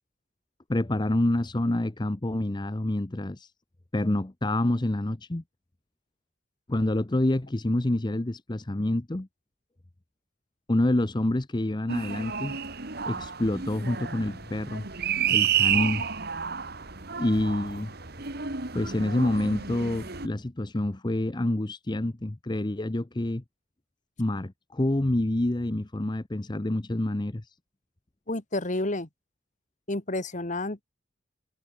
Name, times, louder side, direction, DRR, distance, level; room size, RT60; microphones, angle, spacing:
voice 1, 0.7-3.5 3.9-5.4 6.7-9.3 10.7-12.6 13.1-14.9 15.3-16.0 17.2-17.9 18.7-23.4 24.2-27.5, left 1 dB, 25° left, 0.8 m, -27 dB
sound 1, 11.9-20.3, right 8 dB, 55° right, 2.5 m, -30 dB
voice 2, 28.3-29.1 29.9-30.8, left 2 dB, 40° left, 2.0 m, -30 dB
head